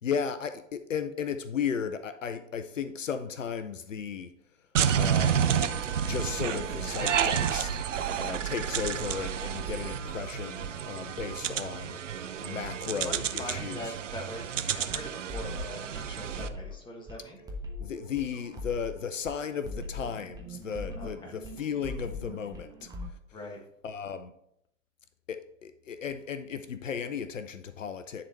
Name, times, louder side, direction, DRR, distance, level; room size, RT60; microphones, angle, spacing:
voice 1, 0.0-4.3 5.0-5.5 6.0-12.0 12.4-13.9 17.8-22.9 23.8-24.3 25.3-28.2, left 7 dB, 75° left, 0.6 m, -35 dB
sound 1, 4.7-16.5, right 8 dB, 70° right, 0.6 m, -30 dB
voice 2, 12.9-17.4 21.0-21.3 23.3-23.6, left 1 dB, 10° left, 1.6 m, -42 dB
sound 2, 14.8-23.1, left 1 dB, 10° right, 1.1 m, -41 dB
10.0 x 4.0 x 4.5 m
figure-of-eight pair, 95°, 38 cm